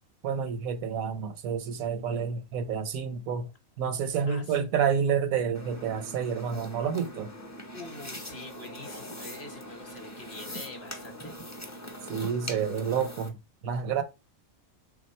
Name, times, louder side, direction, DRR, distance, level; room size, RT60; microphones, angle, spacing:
voice 1, 0.2-3.5 3.8-7.3 12.1-13.4 13.6-14.0, right 7 dB, 90° right, 1.2 m, -29 dB
voice 2, 4.3-4.6 7.7-11.6, left 2 dB, 45° left, 0.9 m, -45 dB
sound 1, 5.5-13.3, left 1 dB, 25° left, 0.3 m, -42 dB
3.4 x 2.8 x 4.2 m
omnidirectional pair, 1.4 m